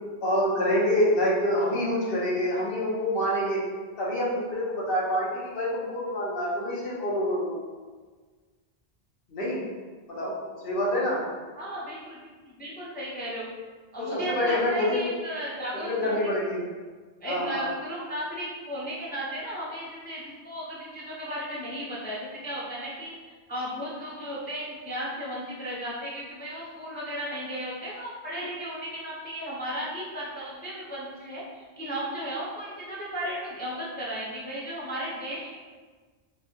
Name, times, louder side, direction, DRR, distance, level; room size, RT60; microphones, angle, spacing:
voice 1, 0.2-3.6 4.0-7.6 9.3-9.6 10.1-10.3 10.6-11.2 14.0-15.1 15.9-16.6 17.2-17.7, left 1 dB, 60° left, -5 dB, 1.0 m, -26 dB
voice 2, 11.6-13.4 13.9-16.2 17.2-23.1 23.5-35.6, equal, 10° left, -6 dB, 0.5 m, -35 dB
4.3 x 2.2 x 2.7 m, 1.4 s
omnidirectional pair, 1.1 m